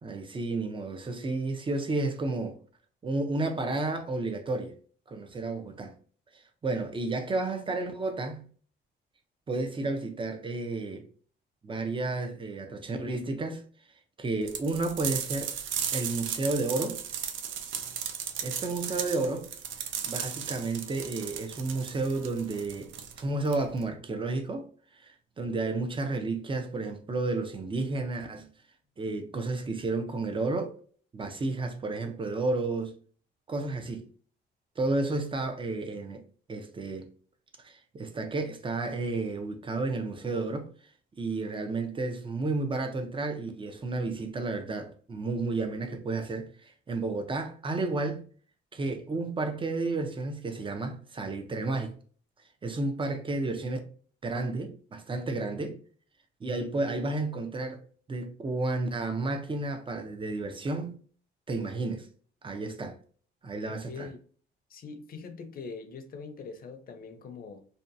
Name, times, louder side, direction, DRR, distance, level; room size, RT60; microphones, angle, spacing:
voice 1, 0.0-2.6 3.0-4.8 5.1-5.9 6.3-8.4 9.5-11.1 11.6-13.6 14.2-15.5 15.9-17.0 18.4-19.5 20.1-24.7 25.0-28.5 29.0-30.8 31.1-32.9 33.5-34.0 34.8-36.2 36.5-37.1 37.6-40.7 41.2-48.2 48.7-51.9 52.6-53.8 54.2-55.8 56.4-57.8 58.1-61.0 61.5-62.1 62.4-63.0 63.4-64.1, right 3 dB, 25° right, 0.6 m, -32 dB
sound 1, 14.5-23.9, right 8 dB, 75° right, 0.5 m, -36 dB
voice 2, 63.9-64.2 64.7-67.6, left 4 dB, 45° left, 0.6 m, -42 dB
2.7 x 2.3 x 2.5 m
cardioid pair, 90°, 20 cm